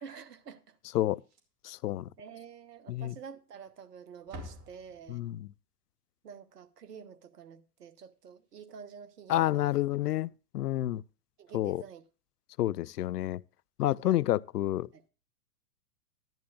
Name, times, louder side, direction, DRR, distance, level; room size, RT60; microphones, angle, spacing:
voice 1, 0.0-0.8 2.2-5.2 6.2-9.7 11.4-12.0 14.0-14.2 14.9-15.0, right 7 dB, 75° right, 1.3 m, -48 dB
Slam, 1.1-1.8 2.1-2.2 2.6-2.7 3.5-3.9 4.1-5.4 8.1-8.2 8.5-8.7 10.2-10.3, equal, 30° right, 2.4 m, -49 dB
voice 2, 1.6-2.1 2.9-3.1 5.1-5.5 9.3-11.0 11.5-11.8 12.6-13.4 13.8-14.9, left 14 dB, 75° left, 0.5 m, -29 dB
14.0 x 10.5 x 2.3 m
hypercardioid pair, 110°, 47 cm